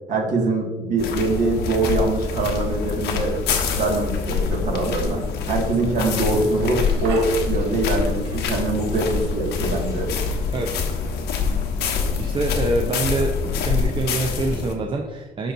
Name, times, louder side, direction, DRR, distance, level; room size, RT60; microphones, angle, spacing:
voice 1, 0.1-3.4 3.7-5.2 5.5-10.1, right 2 dB, 50° right, 0 dB, 1.8 m, -23 dB
sound 1, 1.0-14.7, left 5 dB, 80° left, 1.1 m, -25 dB
sound 2, 6.3-13.1, right 3 dB, 80° right, 1.5 m, -42 dB
voice 2, 12.2-15.5, right 2 dB, 30° right, 2 dB, 0.6 m, -25 dB
12.5 x 4.5 x 2.6 m, 1.2 s
cardioid pair, 110°, 17 cm